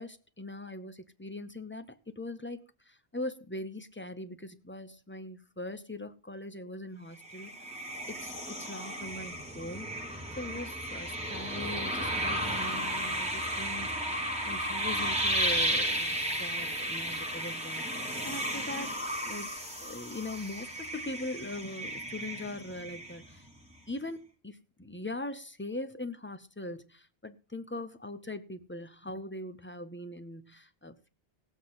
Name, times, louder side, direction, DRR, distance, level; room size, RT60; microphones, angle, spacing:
voice 1, 0.0-9.9 10.4-19.5 19.8-23.5 23.9-31.1, left 2 dB, 15° left, 0.4 m, -41 dB
sound 1, 7.2-23.5, right 1 dB, 5° right, 1.4 m, -34 dB
17.0 x 7.6 x 4.0 m
omnidirectional pair, 1.1 m